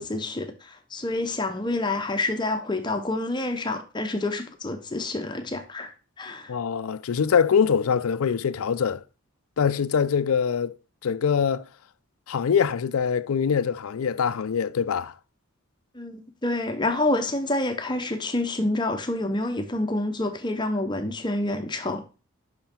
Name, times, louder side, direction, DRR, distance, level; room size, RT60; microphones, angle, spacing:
voice 1, 0.0-5.9 6.2-6.5 15.9-22.1, left 2 dB, 20° left, 0.7 m, -28 dB
voice 2, 6.5-9.0 9.6-10.8 11.0-11.7 12.3-15.1, left 7 dB, 80° left, 0.4 m, -23 dB
5.8 x 5.5 x 4.4 m
head